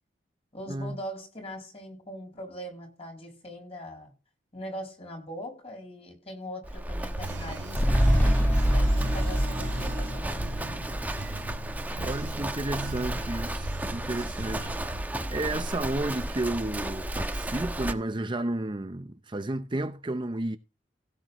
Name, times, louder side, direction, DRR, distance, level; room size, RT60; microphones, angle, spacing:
voice 1, 0.5-4.1 4.5-11.0 11.8-11.9, equal, 35° left, 6.5 m, -41 dB
Livestock farm animals working animals, 6.6-17.9, right 1 dB, 10° right, 1.1 m, -34 dB
sound 1, 7.0-15.0, right 3 dB, 80° right, 0.8 m, -40 dB
sound 2, 7.7-12.2 12.6-12.7, equal, 10° left, 2.2 m, -25 dB
voice 2, 12.0-14.7 15.3-20.6, right 2 dB, 25° right, 0.7 m, -32 dB
16.5 x 8.6 x 3.1 m
head